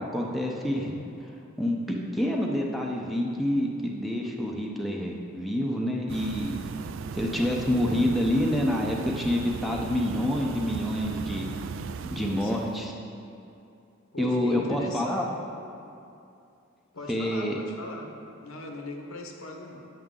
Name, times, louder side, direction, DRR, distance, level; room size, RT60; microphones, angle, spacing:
voice 1, 0.0-1.3 1.6-6.6 7.1-11.5 12.1-12.9 14.2-15.2 17.1-17.6, left 1 dB, ahead, -1 dB, 0.6 m, -27 dB
sound 1, 6.1-12.9, right 6 dB, 65° right, 0.3 m, -37 dB
voice 2, 12.2-12.8 14.1-15.4 16.9-19.9, left 2 dB, 75° left, 3 dB, 0.9 m, -40 dB
9.0 x 7.7 x 3.7 m, 2.6 s
head